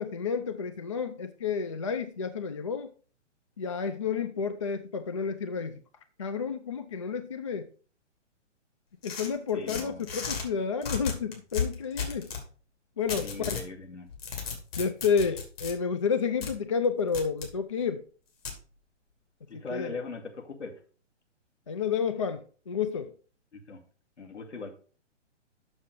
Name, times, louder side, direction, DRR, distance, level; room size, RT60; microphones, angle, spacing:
voice 1, 0.0-2.9 3.6-5.8 6.2-7.7 9.0-12.3 13.0-13.6 14.8-18.0 19.5-20.0 21.7-23.1, left 6 dB, 30° left, 0.4 m, -30 dB
sound 1, 9.0-10.4 10.8-12.4 13.1-13.7 14.1-15.7 16.4-16.5 17.1-17.5 18.4-18.6, left 6 dB, 50° left, 3.0 m, -34 dB
voice 2, 9.5-10.0 13.2-14.1 19.5-20.7 23.5-23.8 24.2-24.7, left 3 dB, 70° left, 2.4 m, -39 dB
7.2 x 6.4 x 5.3 m
figure-of-eight pair, 125°, 37 cm